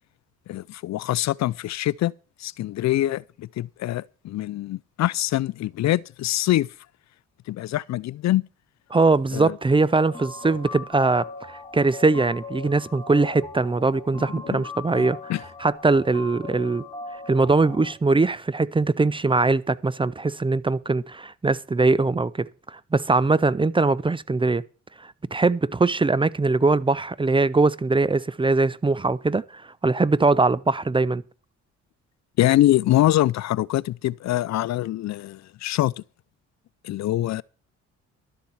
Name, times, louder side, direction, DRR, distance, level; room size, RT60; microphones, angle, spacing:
voice 1, 0.5-2.1 2.4-6.7 7.5-8.4 9.3-9.6 14.5-14.6 14.9-15.0 15.3-15.4 32.4-35.9 36.8-37.4, left 14 dB, 65° left, 0.5 m, -24 dB
voice 2, 8.9-15.3 15.6-16.8 17.3-24.6 25.0-31.2, right 3 dB, 15° right, 0.6 m, -21 dB
sound 1, 9.9-17.9, left 3 dB, 15° left, 2.7 m, -39 dB
12.5 x 7.4 x 7.2 m
cardioid pair, 90°, 30 cm